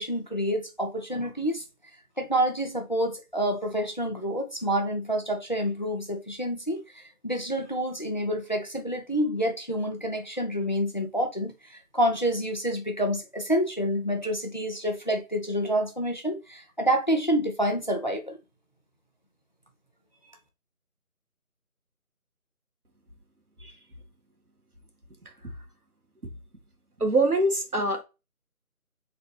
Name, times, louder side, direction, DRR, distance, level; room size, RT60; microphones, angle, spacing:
voice 1, 0.0-1.6 2.2-18.4, equal, 30° left, 0.7 m, -28 dB
voice 2, 27.0-28.0, right 2 dB, 90° right, 1.7 m, -24 dB
4.2 x 4.0 x 3.2 m
figure-of-eight pair, 165°, 44 cm